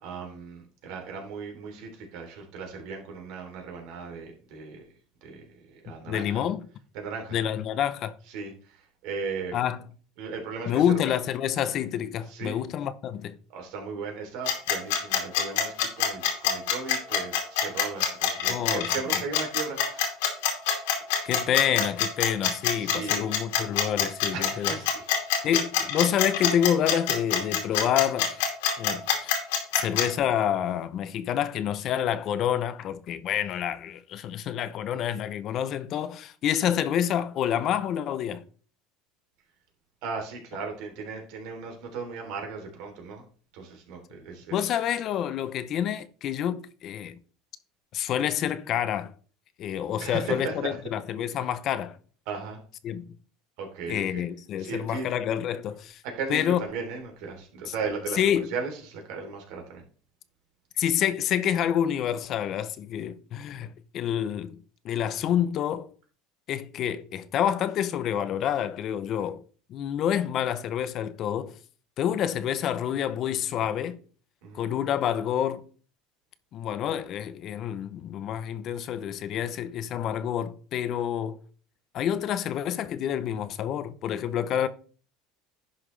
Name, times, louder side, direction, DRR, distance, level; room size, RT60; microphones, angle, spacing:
voice 1, 0.0-4.8 5.2-5.4 5.7-6.4 6.9-7.4 8.3-8.5 9.0-9.6 10.2-10.8 12.3-12.6 13.5-20.0 22.8-23.3 24.3-25.1 25.3-25.5 40.0-43.2 43.5-44.6 50.0-50.7 52.3-52.6 53.6-54.2 54.6-55.0 56.0-59.8 74.4-74.6, right 4 dB, 70° right, 3.2 m, -36 dB
voice 2, 6.1-6.7 7.3-8.1 9.5-9.8 10.7-13.4 18.5-18.9 19.1-19.2 21.2-24.8 25.4-28.4 28.8-29.4 29.7-38.4 44.5-47.2 47.9-49.1 49.6-52.0 52.8-53.1 53.9-56.0 56.3-56.6 57.6-57.7 58.1-58.5 60.8-64.6 64.8-65.9 66.5-69.4 69.7-71.5 72.0-74.0 74.5-75.6 76.5-81.4 81.9-84.7, left 10 dB, 45° left, 0.7 m, -28 dB
sound 1, 14.5-30.1, left 8 dB, 90° left, 2.4 m, -25 dB
11.0 x 5.8 x 3.3 m
supercardioid pair, 125°, 0 cm